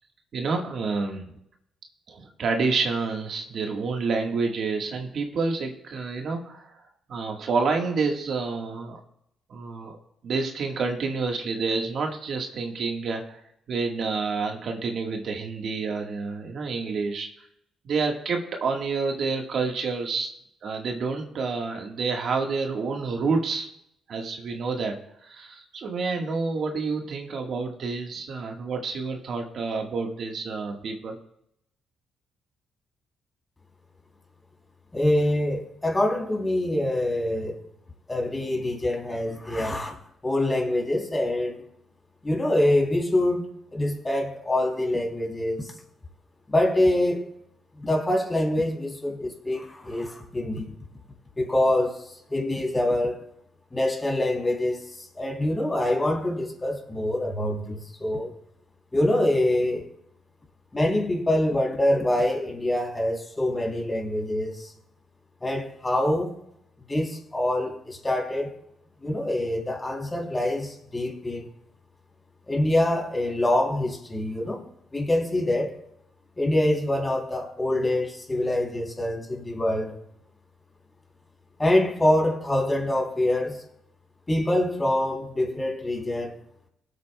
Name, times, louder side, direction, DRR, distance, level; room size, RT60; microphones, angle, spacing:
voice 1, 0.3-1.3 2.1-6.8 7.1-9.0 9.5-10.0 10.2-13.4 13.7-17.3 17.8-20.3 20.6-23.7 24.1-25.0 25.2-31.2, right 4 dB, 60° right, 1.4 m, -28 dB
voice 2, 34.9-37.6 38.1-40.0 40.2-41.6 42.2-45.7 46.5-47.2 47.8-50.7 51.4-53.2 53.7-58.3 58.9-59.9 60.7-64.7 65.4-66.4 66.9-68.5 69.0-71.5 72.5-74.6 74.9-75.7 76.4-79.9 81.6-83.6 84.3-86.3, left 1 dB, 20° left, 2.9 m, -25 dB
22.5 x 8.2 x 2.2 m
cardioid pair, 90°, 0 cm